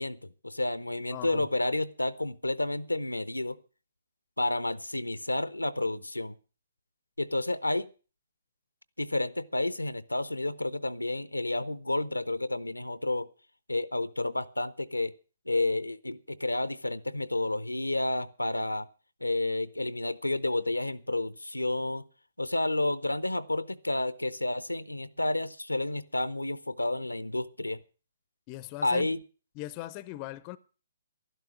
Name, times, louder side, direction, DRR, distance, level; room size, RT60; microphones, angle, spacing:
voice 1, 0.0-3.6 4.4-6.3 7.2-7.9 9.0-13.3 13.7-15.1 15.5-18.9 19.2-22.0 22.4-27.8 28.8-29.2, left 2 dB, 85° left, 0.7 m, -30 dB
voice 2, 1.1-1.5 28.5-29.1 29.6-30.6, left 17 dB, 25° left, 0.6 m, -39 dB
12.0 x 11.5 x 6.0 m
figure-of-eight pair, 130°, 0 cm